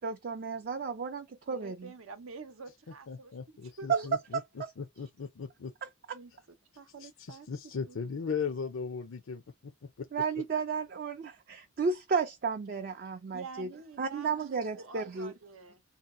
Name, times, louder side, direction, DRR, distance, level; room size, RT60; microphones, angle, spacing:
voice 1, 0.0-1.9 3.9-4.0 4.6-4.7 6.1-6.2 10.1-13.7 14.0-15.3, right 5 dB, 45° right, 0.4 m, -33 dB
voice 2, 1.5-3.3 3.6-4.1 6.1-8.0 13.3-15.8, right 3 dB, 85° right, 0.7 m, -47 dB
voice 3, 3.1-5.7 7.0-9.4 9.8-10.1, left 5 dB, 75° left, 0.5 m, -38 dB
2.8 x 2.2 x 3.6 m
head